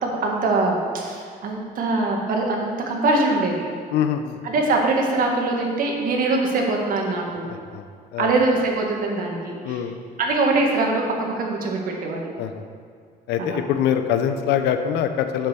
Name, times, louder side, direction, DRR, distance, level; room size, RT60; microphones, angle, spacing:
voice 1, 0.0-3.7 4.4-7.4 8.2-9.8 10.2-12.3 13.4-13.6, right 2 dB, 55° right, 0 dB, 1.8 m, -23 dB
voice 2, 3.9-4.4 7.5-7.9 8.1-8.3 9.6-10.0 12.4-12.7 13.3-15.5, left 9 dB, 85° left, 8 dB, 0.6 m, -24 dB
7.6 x 5.4 x 6.7 m, 2.2 s
cardioid pair, 110°, 17 cm